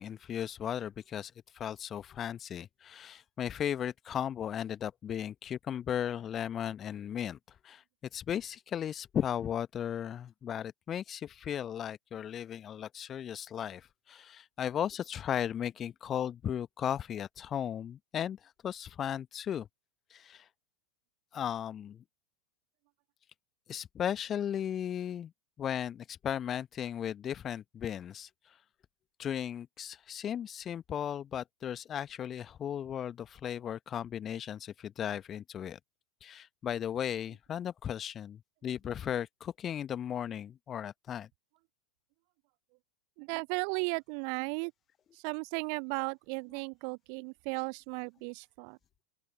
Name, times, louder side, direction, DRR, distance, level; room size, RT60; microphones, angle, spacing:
voice 1, 0.0-7.4 7.6-7.8 8.1-19.7 20.1-20.4 21.3-22.0 23.7-25.3 25.6-28.3 29.2-35.8 36.2-41.3, left 9 dB, 25° left, 1.2 m, -36 dB
voice 2, 43.2-44.7 45.1-48.8, right 40 dB or more, 45° right, 0.9 m, -35 dB
open air
figure-of-eight pair, 90°, 0 cm